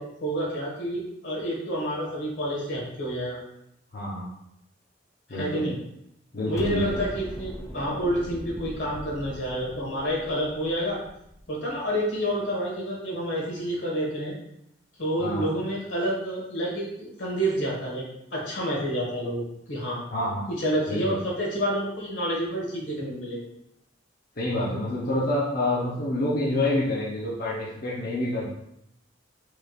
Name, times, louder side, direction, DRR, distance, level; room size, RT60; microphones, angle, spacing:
voice 1, 0.0-3.4 5.3-5.8 6.5-11.0 11.5-14.3 15.0-20.0 20.5-23.4, equal, 85° left, -3 dB, 1.5 m, -29 dB
voice 2, 3.9-4.3 5.3-5.7 6.3-7.0 15.2-15.5 20.1-20.5 20.9-21.2 24.4-28.5, left 1 dB, 55° left, -6 dB, 0.7 m, -27 dB
Explosion, 6.6-11.7, equal, 15° left, 0.5 m, -40 dB
4.6 x 3.1 x 2.4 m, 0.78 s
head